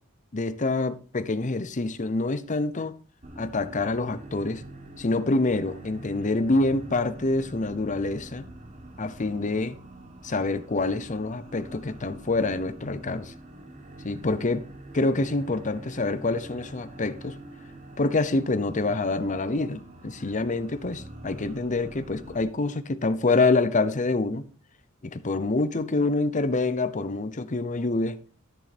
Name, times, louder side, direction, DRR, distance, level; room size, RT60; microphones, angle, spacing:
voice 1, 0.3-3.0 3.4-4.6 5.0-8.5 9.0-9.7 10.2-13.3 14.0-14.6 14.9-17.4 18.0-24.4 25.0-28.2, left 3 dB, 35° left, 0.7 m, -26 dB
sound 1, 3.2-22.4, right 1 dB, 35° right, 1.6 m, -45 dB
13.0 x 6.4 x 4.2 m
head